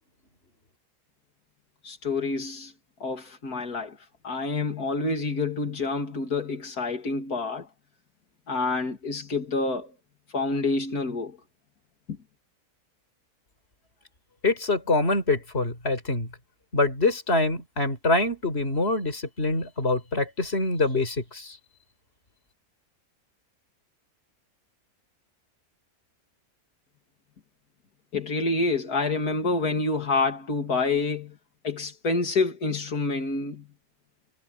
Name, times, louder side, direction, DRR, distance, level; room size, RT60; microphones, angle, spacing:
voice 1, 1.8-2.7 3.0-4.0 4.2-7.7 8.5-9.9 10.3-11.4 12.1-12.2 28.1-31.4 31.6-33.7, left 3 dB, 90° left, 3.0 m, -27 dB
voice 2, 14.4-16.3 16.7-21.5, left 2 dB, 45° left, 4.7 m, -25 dB
omnidirectional pair, 1.6 m